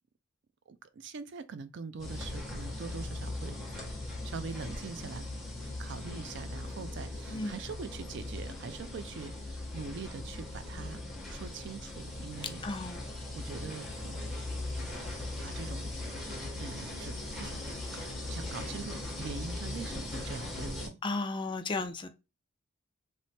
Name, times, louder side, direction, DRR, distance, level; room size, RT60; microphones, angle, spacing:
voice 1, 0.7-3.6 4.2-5.4 5.8-11.0 11.3-12.6 13.3-14.5 15.4-17.8 18.3-21.0, right 5 dB, 60° right, 0.4 m, -43 dB
sound 1, 2.0-20.9, left 2 dB, ahead, 1.1 m, -39 dB
voice 2, 12.6-13.0 21.0-22.1, left 3 dB, 25° left, 0.4 m, -34 dB
3.2 x 2.1 x 4.1 m
head